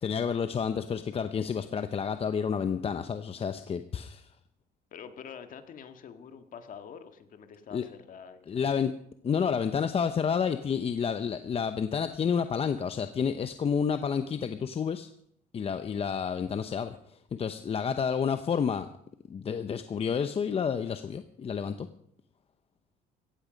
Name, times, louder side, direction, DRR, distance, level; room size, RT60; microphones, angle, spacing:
voice 1, 0.0-4.3 7.7-7.8 8.5-8.9 9.2-15.1 15.5-18.9 19.3-21.9, left 6 dB, 35° left, 9 dB, 0.8 m, -30 dB
voice 2, 4.9-8.7, left 7 dB, 55° left, 8 dB, 1.9 m, -46 dB
17.0 x 15.0 x 5.3 m, 0.70 s
cardioid pair, 110°, 17 cm